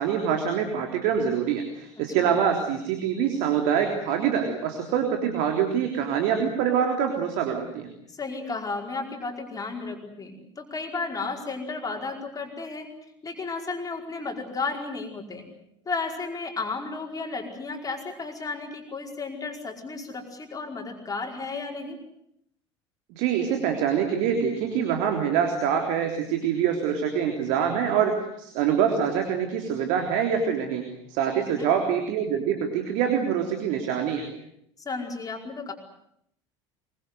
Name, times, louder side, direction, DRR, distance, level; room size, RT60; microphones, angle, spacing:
voice 1, 0.0-7.9 23.1-34.3, right 8 dB, 55° right, 4 dB, 3.5 m, -25 dB
voice 2, 8.1-12.9 13.2-15.5 15.8-22.0 31.4-31.7 34.8-35.7, left 4 dB, 25° left, 1 dB, 5.0 m, -33 dB
25.0 x 23.5 x 8.0 m, 0.73 s
figure-of-eight pair, 70°, 16 cm